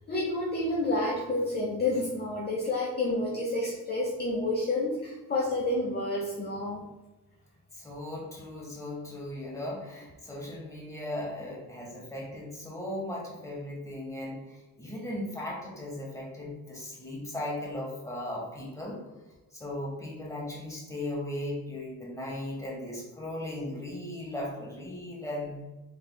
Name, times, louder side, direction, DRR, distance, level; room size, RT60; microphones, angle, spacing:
voice 1, 0.0-6.8, left 2 dB, 30° left, -3 dB, 0.7 m, -29 dB
voice 2, 7.7-19.0 19.5-25.6, left 1 dB, 10° left, -3 dB, 1.3 m, -37 dB
3.5 x 3.3 x 2.2 m, 1.1 s
supercardioid pair, 65°, 35 cm